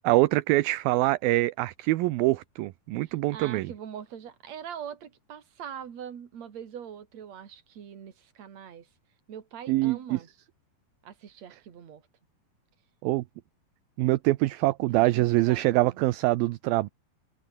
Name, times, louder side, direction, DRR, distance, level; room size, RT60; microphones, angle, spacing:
voice 1, 0.0-3.7 9.7-10.2 13.0-13.2 14.0-16.9, right 18 dB, 75° right, 2.4 m, -24 dB
voice 2, 3.0-8.9 9.3-10.3 11.0-12.0 14.9-16.0, right 8 dB, 45° right, 3.3 m, -43 dB
omnidirectional pair, 4.7 m